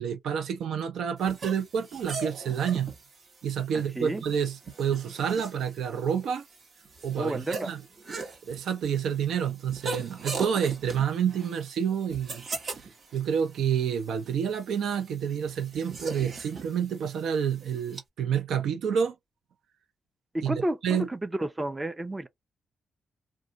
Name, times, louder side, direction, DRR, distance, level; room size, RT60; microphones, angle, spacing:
voice 1, 0.0-2.9 3.4-6.5 7.0-7.8 8.5-12.4 13.1-19.1 20.4-21.1, right 8 dB, 80° right, 0.5 m, -29 dB
sound 1, 1.2-18.0, right 4 dB, 55° right, 1.3 m, -41 dB
voice 2, 3.7-4.2 7.2-7.7 20.3-22.3, right 1 dB, 15° right, 0.5 m, -31 dB
2.5 x 2.3 x 3.9 m
cardioid pair, 95°, 0 cm